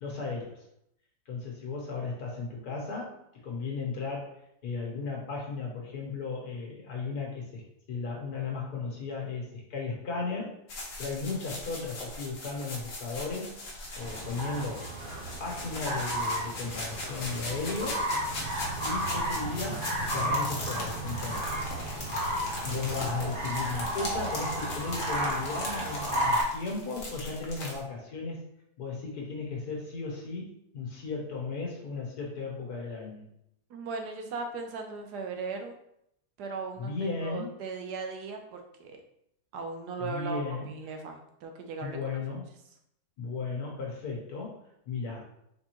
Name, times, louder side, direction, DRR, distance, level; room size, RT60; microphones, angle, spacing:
voice 1, 0.0-0.6 1.3-4.4 4.6-7.6 7.9-10.6 11.0-13.6 14.0-14.9 15.4-18.1 18.8-21.5 22.6-28.4 28.8-33.3 36.8-37.5 40.0-40.7 41.8-42.5 43.2-45.3, left 4 dB, 70° left, -1 dB, 1.7 m, -35 dB
sound 1, 10.7-27.8, left 2 dB, 55° left, 1.4 m, -40 dB
sound 2, 14.0-26.4, right 1 dB, 35° right, 1.3 m, -33 dB
voice 2, 33.7-35.7 36.4-36.9 37.2-39.0 39.5-42.0, right 4 dB, 90° right, 4 dB, 1.3 m, -37 dB
4.4 x 3.9 x 3.0 m, 0.76 s
omnidirectional pair, 1.7 m